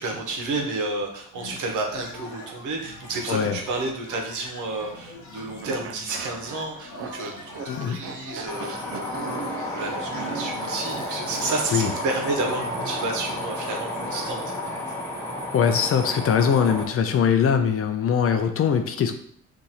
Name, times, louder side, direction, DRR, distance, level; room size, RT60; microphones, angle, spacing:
voice 1, 0.0-14.8, right 3 dB, 75° right, 2 dB, 0.9 m, -31 dB
sound 1, 1.3-14.3, left 2 dB, 80° left, 0.9 m, -42 dB
voice 2, 3.3-3.6 7.7-8.0 11.7-11.9 15.5-19.1, left 7 dB, 50° left, 7 dB, 0.5 m, -22 dB
sound 2, 5.6-12.2, right 5 dB, 45° right, 0.5 m, -37 dB
sound 3, 8.5-16.9, left 1 dB, 10° left, 0.9 m, -32 dB
2.9 x 2.6 x 4.0 m, 0.63 s
cardioid pair, 90°, 30 cm